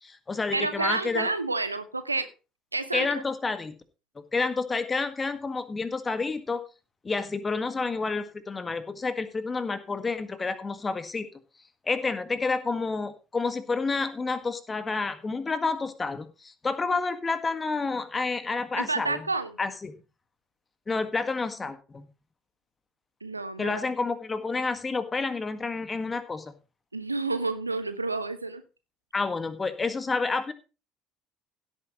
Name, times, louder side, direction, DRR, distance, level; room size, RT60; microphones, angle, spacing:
voice 1, 0.0-1.3 2.9-3.8 4.3-6.6 7.0-11.3 11.8-19.2 19.6-19.9 20.9-22.1 23.6-26.5 29.1-30.5, left 4 dB, 20° left, 11 dB, 1.7 m, -29 dB
voice 2, 0.5-2.3 2.7-3.1 18.8-19.5 23.2-23.8 26.9-28.6, right 3 dB, 85° right, 12 dB, 0.8 m, -29 dB
16.5 x 8.9 x 3.1 m, 0.31 s
figure-of-eight pair, 60°, 0 cm